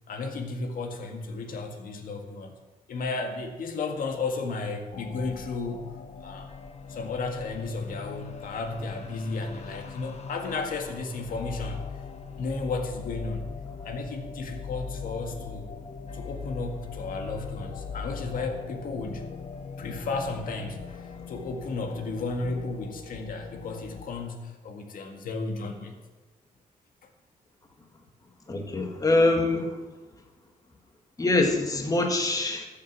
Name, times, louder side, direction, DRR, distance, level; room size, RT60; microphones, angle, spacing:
voice 1, 0.1-2.5 2.9-6.5 6.9-11.8 12.4-13.5 13.8-15.7 16.1-19.3 19.8-26.0, left 3 dB, 70° left, 4 dB, 1.9 m, -33 dB
sound 1, 4.9-24.1, left 5 dB, 45° left, 1.3 m, -40 dB
voice 2, 28.5-29.8 31.2-32.7, left 2 dB, 25° left, 3 dB, 1.8 m, -24 dB
14.0 x 8.1 x 6.2 m, 1.2 s
cardioid pair, 115°, 15 cm